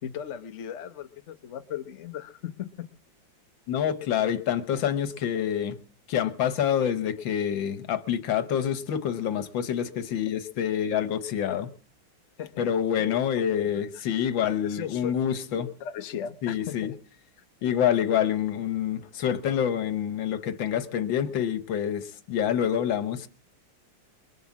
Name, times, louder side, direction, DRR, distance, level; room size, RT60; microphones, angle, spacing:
voice 1, 0.0-2.9 12.4-12.7 13.6-14.0 14.6-15.1 15.5-16.9, left 9 dB, 50° left, 1.0 m, -37 dB
voice 2, 3.7-5.7 6.1-11.7 12.6-15.7 16.4-16.9 17.6-23.3, left 9 dB, 80° left, 1.8 m, -27 dB
22.0 x 8.1 x 7.3 m
omnidirectional pair, 2.0 m